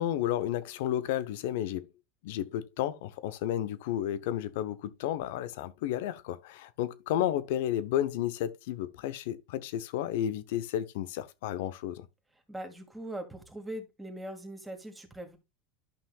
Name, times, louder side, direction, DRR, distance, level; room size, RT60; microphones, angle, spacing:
voice 1, 0.0-1.9 2.2-12.1, left 11 dB, 70° left, 0.8 m, -32 dB
voice 2, 12.5-15.4, right 1 dB, 5° right, 2.1 m, -41 dB
12.0 x 5.6 x 2.3 m
supercardioid pair, 110°, 0 cm